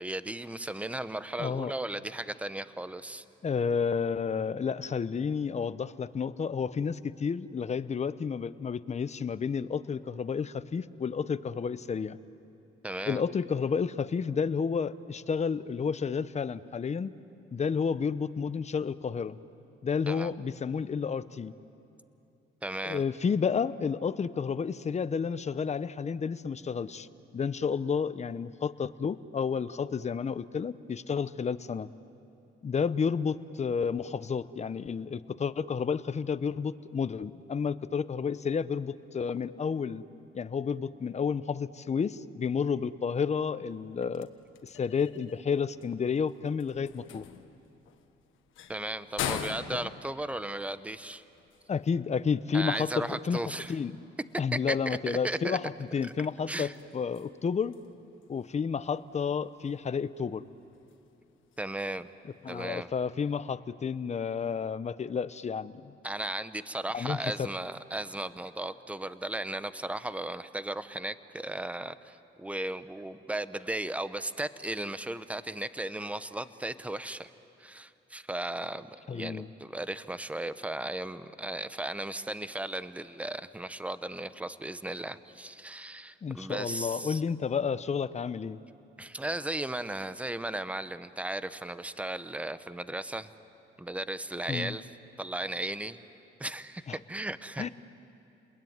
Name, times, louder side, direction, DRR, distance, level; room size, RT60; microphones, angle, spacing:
voice 1, 0.0-3.2 12.8-13.2 20.1-20.3 22.6-23.0 48.7-51.2 52.5-53.7 54.5-55.6 56.0-56.1 56.5-56.7 61.6-62.1 62.5-62.9 66.0-77.3 77.6-87.2 89.0-93.3 93.8-94.9 95.2-96.0 96.4-97.7, right 1 dB, 5° right, 13 dB, 0.9 m, -36 dB
voice 2, 1.4-1.7 3.4-12.2 13.1-17.1 17.5-19.4 19.8-21.5 22.8-27.1 27.3-31.9 32.6-40.0 40.3-44.3 44.6-47.3 49.7-49.8 51.7-53.9 54.4-57.8 58.3-60.4 62.4-65.9 66.9-67.5 79.1-79.5 86.2-88.6 94.5-94.8 96.9-97.0 97.6-97.7, left 6 dB, 35° left, 14 dB, 0.9 m, -31 dB
sound 1, 43.7-63.2, left 9 dB, 85° left, 1.5 m, -45 dB
30.0 x 21.0 x 9.5 m, 2.8 s
cardioid pair, 90°, 20 cm